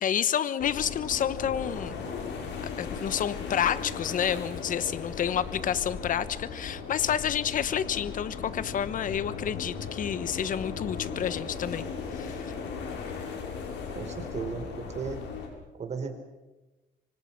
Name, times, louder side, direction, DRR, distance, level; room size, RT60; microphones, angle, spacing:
voice 1, 0.0-2.0 2.8-12.5, left 9 dB, 45° left, 15 dB, 1.1 m, -29 dB
sound 1, 0.6-15.5, left 5 dB, 70° left, 6.3 m, -37 dB
voice 2, 13.9-15.2 15.7-16.1, right 5 dB, 40° right, 6 dB, 4.6 m, -35 dB
26.0 x 25.0 x 6.0 m, 1.1 s
cardioid pair, 115°, 19 cm